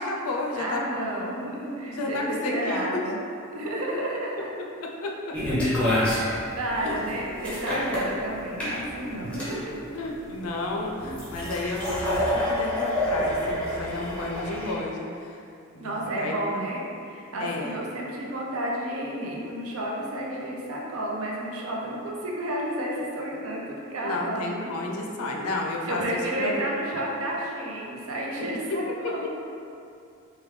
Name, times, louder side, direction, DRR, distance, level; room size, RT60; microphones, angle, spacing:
voice 1, 0.0-0.8 1.9-3.0 3.6-3.7 4.4-5.6 6.8-7.0 8.6-9.1 9.9-15.4 15.7-16.7 17.4-17.8 24.0-26.5 28.7-29.3, left 2 dB, 75° left, 0 dB, 0.4 m, -32 dB
voice 2, 0.6-3.2 3.5-4.5 6.1-9.7 15.8-24.7 25.8-29.3, right 1 dB, 70° right, -2 dB, 0.5 m, -31 dB
sound 1, 5.3-14.7, left 1 dB, 5° left, 0.7 m, -28 dB
3.4 x 2.2 x 3.1 m, 2.5 s
head